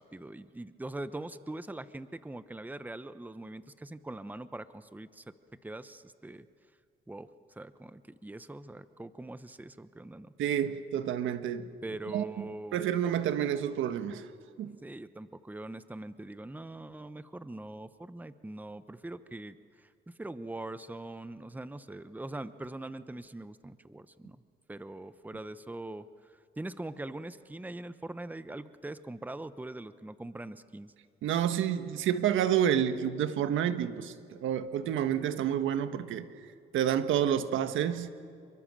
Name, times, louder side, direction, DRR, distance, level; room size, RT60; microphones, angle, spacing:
voice 1, 0.0-5.2 5.6-6.5 7.1-7.3 7.5-10.3 11.8-12.8 14.8-24.4 24.7-30.9, right 2 dB, 10° right, 1.0 m, -42 dB
voice 2, 10.4-11.7 12.1-12.4 12.7-14.3 14.6-14.7 31.2-36.3 36.7-38.1, right 9 dB, 80° right, 1.4 m, -29 dB
28.0 x 23.5 x 7.6 m
cardioid pair, 90°, 20 cm